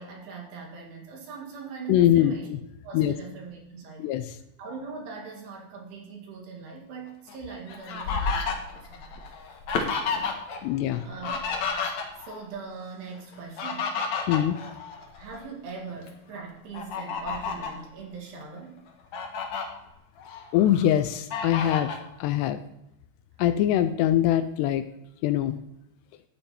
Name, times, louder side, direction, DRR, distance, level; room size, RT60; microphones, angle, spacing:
voice 1, 0.0-2.5 2.8-4.2 4.6-9.2 10.0-10.7 11.0-11.4 12.2-14.0 15.2-18.8, right 5 dB, 70° right, -1 dB, 4.1 m, -41 dB
voice 2, 1.9-2.3 2.9-3.1 4.0-4.2 10.6-11.0 14.3-14.6 20.5-21.9 22.2-22.6 23.4-24.8 25.2-25.6, left 12 dB, 85° left, 11 dB, 2.5 m, -22 dB
Fowl, 7.3-10.6 10.9-12.4 13.3-15.4 15.9-16.1 16.7-17.8 18.4-18.5 18.9-19.6 20.2-20.9 21.3-22.0, left 5 dB, 65° left, 1.8 m, -31 dB
11.5 x 8.6 x 4.3 m, 0.83 s
omnidirectional pair, 5.0 m